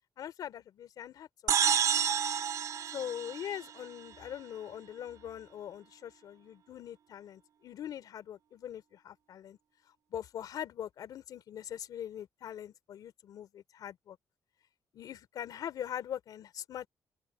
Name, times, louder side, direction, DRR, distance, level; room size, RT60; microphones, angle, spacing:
voice 1, 0.2-1.5 2.9-9.6 10.1-14.2 14.9-16.9, left 10 dB, 65° left, 3.9 m, -42 dB
sound 1, 1.5-4.1, right 8 dB, 55° right, 2.8 m, -29 dB
open air
cardioid pair, 145°, 7 cm